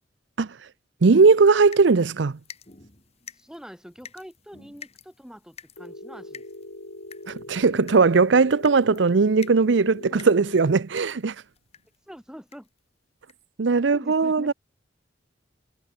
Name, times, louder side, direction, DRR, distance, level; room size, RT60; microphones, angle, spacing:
voice 1, 1.0-2.4 7.3-11.3 13.6-14.5, right 4 dB, 75° right, 0.6 m, -19 dB
sound 1, 1.4-12.0 12.5-12.8 13.3-13.4 13.7-13.8, left 6 dB, 35° left, 3.9 m, -49 dB
voice 2, 3.3-6.5 10.1-10.3 12.1-12.7 13.9-14.5, equal, 5° right, 5.3 m, -44 dB
Telephone, 5.8-10.8, left 1 dB, 75° left, 3.0 m, -41 dB
head